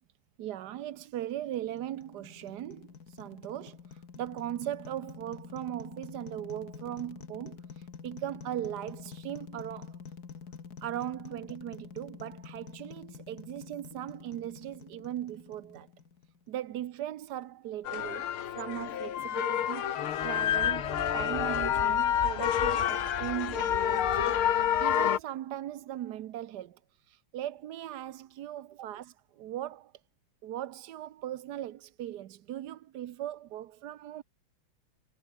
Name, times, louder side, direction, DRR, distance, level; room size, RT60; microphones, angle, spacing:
voice 1, 0.4-10.0 10.8-15.9 16.5-19.9 20.2-29.9 30.4-34.2, right 12 dB, 60° right, 1.2 m, -39 dB
sound 1, 1.3-16.5, left 6 dB, 50° left, 2.3 m, -48 dB
sound 2, 17.8-25.2, left 10 dB, 85° left, 2.1 m, -28 dB
sound 3, 19.5-19.6 20.1-25.2, right 7 dB, 85° right, 0.4 m, -44 dB
omnidirectional pair, 2.3 m